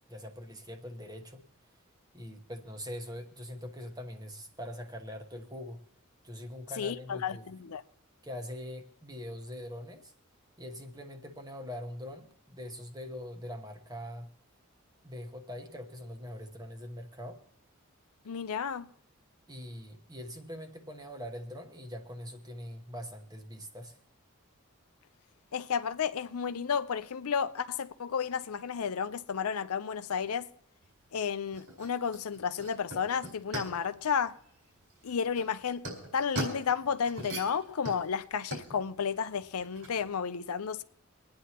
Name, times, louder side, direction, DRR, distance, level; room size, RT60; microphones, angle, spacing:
voice 1, 0.1-1.4 2.1-5.8 6.2-7.5 8.2-10.1 10.6-14.3 15.0-17.4 19.5-24.0, equal, 15° right, 1.1 m, -43 dB
voice 2, 6.8-7.8 18.3-18.9 25.5-30.5 31.1-34.3 35.0-35.8 36.1-40.8, left 6 dB, 85° left, 0.6 m, -32 dB
sound 1, 30.8-40.1, right 1 dB, 75° right, 4.5 m, -42 dB
26.5 x 9.5 x 2.9 m
head